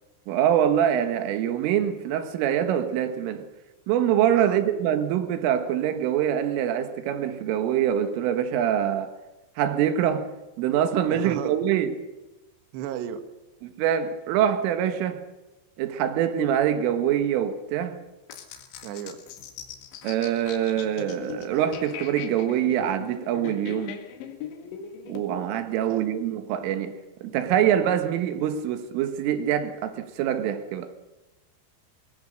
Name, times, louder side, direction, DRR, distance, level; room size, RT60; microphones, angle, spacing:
voice 1, 0.3-3.5 3.9-9.2 9.6-10.3 10.6-12.1 13.6-15.2 15.8-18.0 20.0-24.0 25.1-26.9 27.2-30.9, right 10 dB, 90° right, 4.1 m, -24 dB
voice 2, 11.1-11.6 12.7-13.2 18.8-19.2 25.8-26.1, right 9 dB, 70° right, 3.3 m, -34 dB
sound 1, 18.3-25.2, left 8 dB, 70° left, 4.0 m, -40 dB
22.5 x 21.0 x 6.5 m
omnidirectional pair, 5.6 m